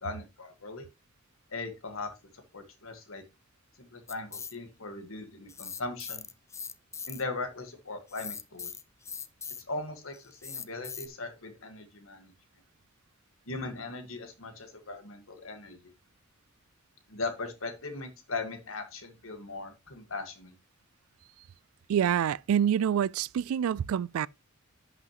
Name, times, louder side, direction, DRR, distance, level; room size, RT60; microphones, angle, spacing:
voice 1, 0.0-0.8 1.5-2.1 2.5-3.2 3.8-6.3 7.1-8.7 9.7-12.3 13.5-15.9 17.1-20.5, left 3 dB, 75° left, 1.6 m, -39 dB
sound 1, 4.1-4.5 5.5-7.2 8.1-9.7 10.1-11.1, left 6 dB, 15° left, 0.4 m, -40 dB
voice 2, 21.9-24.3, right 9 dB, 80° right, 0.3 m, -26 dB
10.5 x 6.0 x 3.0 m
head